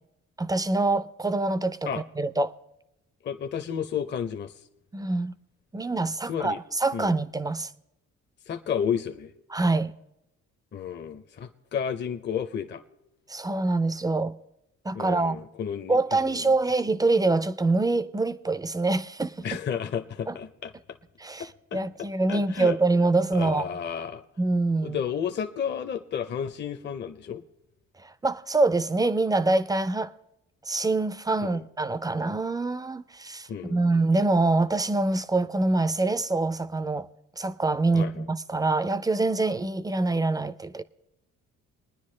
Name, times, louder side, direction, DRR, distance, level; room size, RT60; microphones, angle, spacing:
voice 1, 0.4-2.6 4.9-5.3 5.7-7.7 9.5-9.9 13.3-14.4 14.8-15.4 15.9-19.6 20.3-20.4 21.2-23.7 24.4-25.0 28.0-30.1 30.7-37.1 37.4-40.8, right 3 dB, 15° right, 0.4 m, -25 dB
voice 2, 3.2-4.5 6.3-6.6 6.9-7.1 8.5-9.3 10.7-12.8 14.9-16.5 19.4-20.7 21.7-21.8 22.3-22.8 23.3-24.2 24.8-27.4 31.4-31.6 33.5-33.8 37.9-38.2, left 8 dB, 35° left, 0.6 m, -32 dB
22.5 x 9.7 x 3.2 m
cardioid pair, 90°, 30 cm